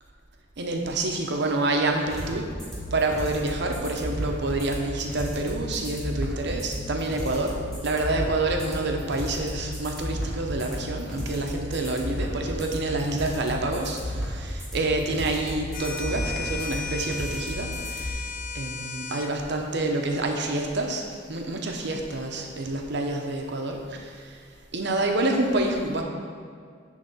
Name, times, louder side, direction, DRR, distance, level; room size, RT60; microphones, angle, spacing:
voice 1, 0.6-2.5 2.9-18.3 18.5-24.4 24.7-26.0, right 2 dB, 60° right, 2 dB, 0.8 m, -28 dB
sound 1, 2.1-18.1, equal, ahead, 1.7 m, -33 dB
sound 2, 15.7-19.3, left 5 dB, 45° left, 0.4 m, -35 dB
10.0 x 3.4 x 4.1 m, 2.1 s
head